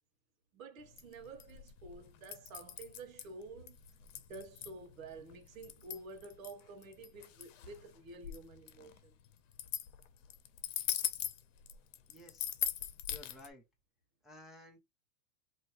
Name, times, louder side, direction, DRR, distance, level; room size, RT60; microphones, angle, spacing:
voice 1, 0.5-3.8 4.3-9.1, right 3 dB, 80° right, 1.2 m, -50 dB
sound 1, 0.8-13.5, left 10 dB, 70° left, 0.9 m, -41 dB
voice 2, 12.1-12.6 13.1-13.6 14.2-14.8, left 1 dB, ahead, 0.4 m, -55 dB
4.3 x 2.8 x 3.0 m
supercardioid pair, 150°, 40 cm